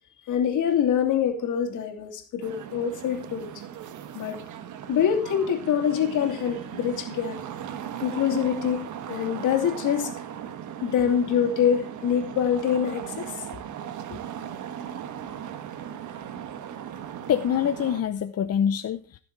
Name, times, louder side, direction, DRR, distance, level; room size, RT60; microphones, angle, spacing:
voice 1, 0.3-3.5 4.1-4.4 4.9-7.4 8.0-10.1 10.8-13.5 14.1-14.2, left 8 dB, 80° left, 2.8 m, -25 dB
sound 1, 2.4-18.0, right 9 dB, 75° right, 1.4 m, -38 dB
voice 2, 17.3-19.2, left 9 dB, 55° left, 0.8 m, -25 dB
16.5 x 7.0 x 4.6 m
cardioid pair, 90°, 30 cm